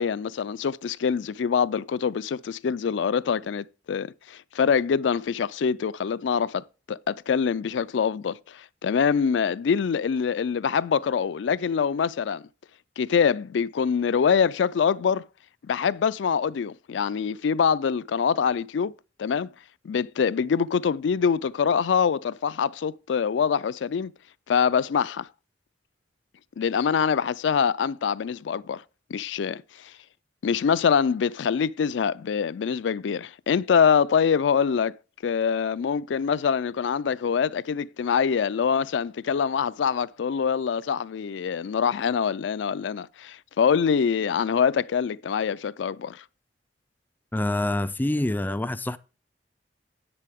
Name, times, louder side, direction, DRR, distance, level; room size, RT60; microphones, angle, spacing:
voice 1, 0.0-12.4 13.0-15.2 15.7-18.9 19.2-19.5 19.8-24.1 24.5-25.3 26.6-28.8 29.1-29.9 30.4-35.0 35.2-46.2, left 6 dB, 80° left, 0.4 m, -24 dB
voice 2, 47.3-49.0, left 1 dB, 10° left, 0.3 m, -26 dB
9.8 x 8.3 x 3.5 m
head